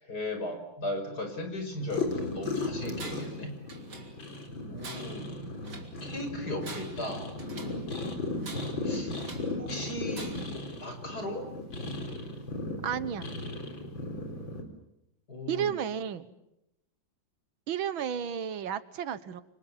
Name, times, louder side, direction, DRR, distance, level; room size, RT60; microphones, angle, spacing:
voice 1, 0.0-3.5 4.7-5.4 6.0-7.3 8.8-9.1 9.6-10.4 10.8-11.5 15.3-15.7, left 1 dB, 50° left, 6 dB, 6.1 m, -36 dB
sound 1, 1.8-14.6, left 2 dB, 75° left, 4.7 m, -36 dB
Tools, 2.9-3.4 3.7-4.4 4.8-6.0 6.5-7.9 8.4-9.6 10.1-10.6, right 3 dB, 55° right, 3.7 m, -46 dB
voice 2, 12.8-13.3 15.5-16.3 17.7-19.4, right 9 dB, 85° right, 14 dB, 2.0 m, -32 dB
29.5 x 25.5 x 7.4 m, 0.84 s
omnidirectional pair, 2.1 m